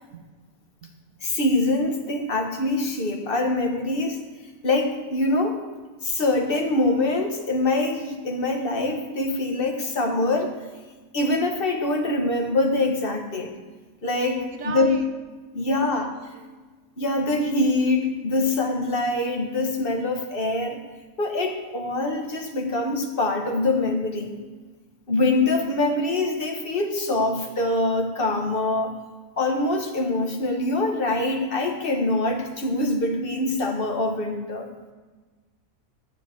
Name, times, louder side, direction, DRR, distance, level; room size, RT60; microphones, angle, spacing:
voice 1, 1.2-4.2 4.6-5.6 6.0-10.5 11.1-13.5 14.0-15.0 15.5-16.1 17.0-20.8 21.2-24.3 25.1-28.9 29.4-34.7, left 2 dB, 45° left, 4 dB, 1.4 m, -24 dB
voice 2, 14.4-15.0 15.7-16.4, right 5 dB, 70° right, 6 dB, 1.4 m, -37 dB
12.5 x 4.8 x 7.8 m, 1.3 s
omnidirectional pair, 1.4 m